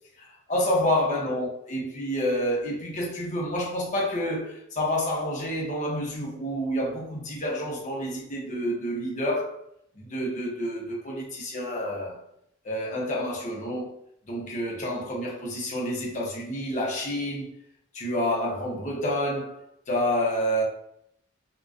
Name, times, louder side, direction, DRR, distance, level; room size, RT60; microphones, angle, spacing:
voice 1, 0.2-9.6 9.9-12.2 12.6-13.9 14.3-17.5 17.9-20.6, equal, 35° left, 0.6 m, -29 dB
2.4 x 2.2 x 2.4 m
head